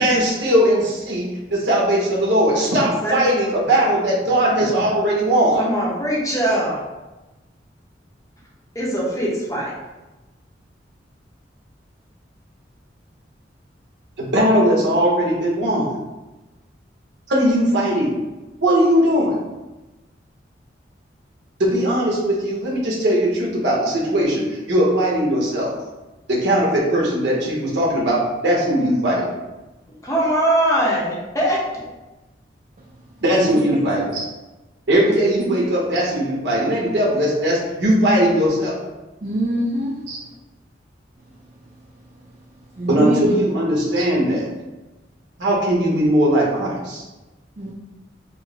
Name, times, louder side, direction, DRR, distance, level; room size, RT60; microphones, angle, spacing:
voice 1, 0.0-5.6 14.2-15.8 17.3-18.1 18.6-19.4 21.6-24.4 24.7-25.7 26.3-29.3 33.2-34.2 34.9-38.8 40.1-40.2 42.9-44.5 45.4-47.0, right 1 dB, 75° right, -4 dB, 1.1 m, -19 dB
voice 2, 2.5-3.2 5.6-6.8 8.7-9.7 30.0-31.8, right 1 dB, 20° left, -4 dB, 0.8 m, -22 dB
voice 3, 39.2-39.9 42.8-43.1 47.6-47.7, right 1 dB, 40° right, -3 dB, 0.4 m, -24 dB
4.5 x 2.1 x 3.4 m, 1.1 s
head